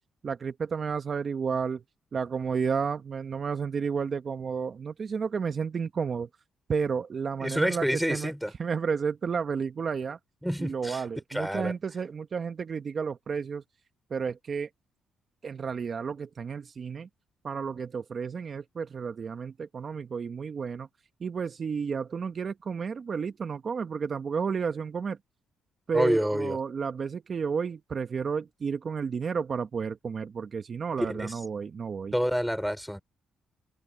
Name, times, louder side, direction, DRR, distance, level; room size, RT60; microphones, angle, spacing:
voice 1, 0.2-1.8 2.1-6.3 6.7-8.3 8.6-10.2 10.6-13.6 14.1-14.7 15.4-17.1 17.4-20.9 21.2-25.2 25.9-32.1, right 6 dB, 45° right, 1.2 m, -31 dB
voice 2, 7.4-8.5 10.4-11.0 11.3-11.7 25.9-26.6 31.1-31.3 32.1-33.0, equal, ahead, 4.0 m, -28 dB
cardioid pair, 90°, 0 cm